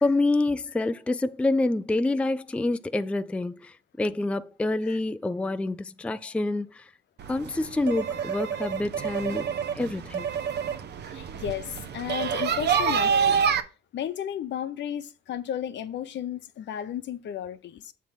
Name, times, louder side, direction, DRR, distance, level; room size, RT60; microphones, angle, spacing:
voice 1, 0.0-6.8 7.3-9.5 9.7-10.3, left 2 dB, 5° left, 0.3 m, -27 dB
sound 1, 7.2-13.6, right 7 dB, 60° right, 0.8 m, -27 dB
voice 2, 11.1-13.4 13.9-17.9, left 10 dB, 65° left, 0.7 m, -33 dB
7.4 x 3.5 x 5.7 m
cardioid pair, 90°, 20 cm